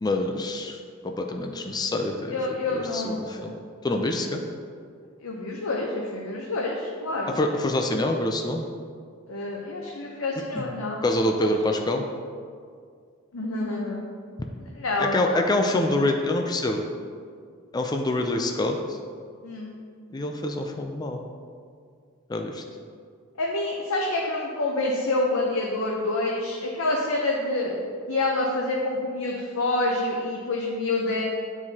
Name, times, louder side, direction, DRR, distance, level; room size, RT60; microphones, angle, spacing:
voice 1, 0.0-0.8 1.0-2.4 2.7-3.5 3.8-4.4 7.4-8.7 10.5-10.7 11.0-12.0 15.0-16.8 17.7-18.8 20.1-21.2 22.3-22.6, left 1 dB, 20° left, 3 dB, 0.4 m, -26 dB
voice 2, 2.3-3.5 5.2-7.4 9.3-11.1 11.4-11.5 13.3-14.0 14.7-15.5 19.4-19.7 23.4-31.2, left 2 dB, 90° left, -2 dB, 0.7 m, -27 dB
9.7 x 4.7 x 2.8 m, 2.1 s
head